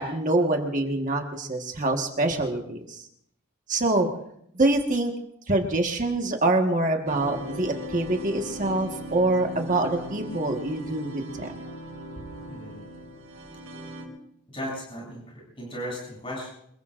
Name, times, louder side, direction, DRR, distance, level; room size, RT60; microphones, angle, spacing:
voice 1, 0.0-3.0 3.7-4.1 4.5-5.1 5.5-11.5, right 2 dB, 35° right, 3 dB, 1.5 m, -25 dB
sound 1, 7.1-14.1, right 1 dB, 65° right, 5.1 m, -38 dB
voice 2, 12.5-12.8 14.5-16.5, equal, 25° left, -2 dB, 7.4 m, -36 dB
26.0 x 22.0 x 2.5 m, 0.71 s
head